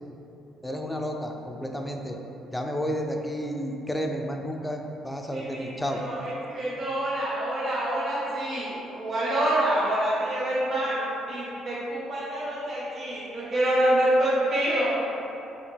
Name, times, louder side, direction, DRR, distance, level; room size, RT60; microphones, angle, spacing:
voice 1, 0.6-2.2 2.5-6.0, equal, 5° left, 2 dB, 0.4 m, -31 dB
voice 2, 5.3-15.0, right 1 dB, 40° right, -8 dB, 0.9 m, -27 dB
4.9 x 2.9 x 3.3 m, 3.0 s
cardioid pair, 115°, 0 cm